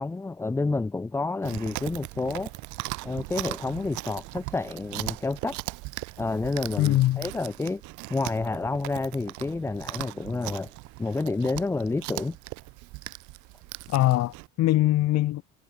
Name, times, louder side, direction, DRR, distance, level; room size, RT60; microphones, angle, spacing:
voice 1, 0.0-2.5 3.0-5.6 6.2-7.8 8.1-10.7 11.0-12.4, left 3 dB, 10° left, 0.5 m, -29 dB
Chewing mastication, 1.4-14.5, right 23 dB, 80° right, 1.0 m, -39 dB
voice 2, 6.8-7.3 13.9-15.4, left 15 dB, 60° left, 1.5 m, -22 dB
cardioid pair, 125°, 29 cm